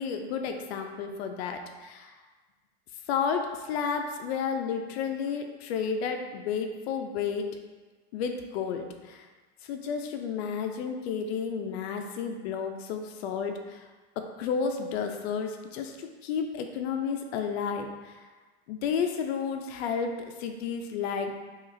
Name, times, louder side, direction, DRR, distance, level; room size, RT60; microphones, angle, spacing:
voice 1, 0.0-2.1 3.1-7.5 8.1-9.3 9.6-13.8 14.2-18.1 18.7-21.3, left 6 dB, 80° left, 5 dB, 0.6 m, -32 dB
5.8 x 2.4 x 2.6 m, 1.3 s
supercardioid pair, 150°, 31 cm